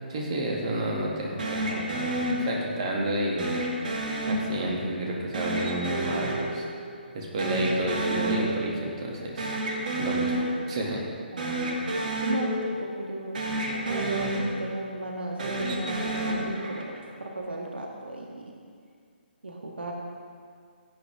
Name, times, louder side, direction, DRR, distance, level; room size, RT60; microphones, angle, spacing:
voice 1, 0.1-3.5 4.3-6.7 7.1-9.5 10.0-11.0, right 1 dB, 35° right, -2 dB, 2.2 m, -30 dB
sound 1, 1.4-2.9 3.4-4.9 5.3-7.1 7.4-8.9 9.2-10.9 11.3-13.1 13.3-14.9 15.3-17.1, right 1 dB, 55° right, 2.1 m, -30 dB
voice 2, 11.3-13.4 13.8-18.5 19.4-19.9, right 2 dB, 75° right, 0 dB, 1.6 m, -34 dB
18.0 x 8.5 x 3.6 m, 2.2 s
figure-of-eight pair, 140°, 6 cm